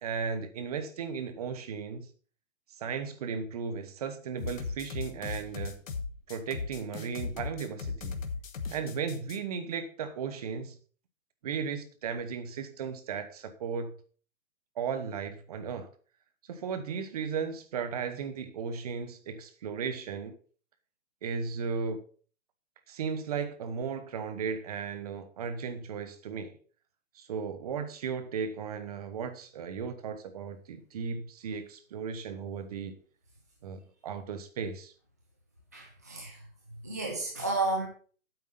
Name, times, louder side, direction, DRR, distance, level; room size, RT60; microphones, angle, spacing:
voice 1, 0.0-2.1 2.8-5.8 6.3-8.2 8.7-10.8 11.4-13.9 14.8-15.9 16.5-20.4 21.2-22.0 22.9-26.6 27.1-33.0 33.6-34.9, right 6 dB, 30° right, 1.1 m, -35 dB
sound 1, 4.4-9.4, left 4 dB, 70° left, 2.0 m, -37 dB
voice 2, 35.7-37.9, right 2 dB, 15° right, 0.5 m, -33 dB
8.5 x 8.3 x 5.2 m
hypercardioid pair, 160°, 41 cm